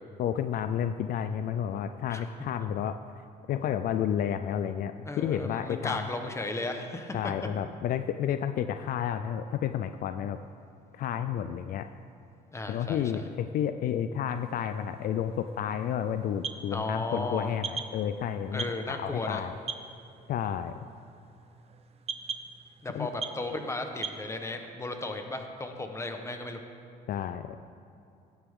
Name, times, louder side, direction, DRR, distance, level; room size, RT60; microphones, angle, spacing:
voice 1, 0.2-3.0 3.5-6.1 7.1-10.4 10.9-11.9 12.7-19.5 20.3-20.8 22.9-23.1 27.1-27.6, left 9 dB, 60° left, 9 dB, 0.5 m, -31 dB
voice 2, 5.0-7.3 12.5-13.2 16.7-17.5 18.5-19.4 22.8-26.6, left 2 dB, 15° left, 5 dB, 1.2 m, -35 dB
sound 1, 14.3-24.2, right 5 dB, 35° right, 0.8 m, -42 dB
17.0 x 10.0 x 3.7 m, 2.6 s
cardioid pair, 110°, 17 cm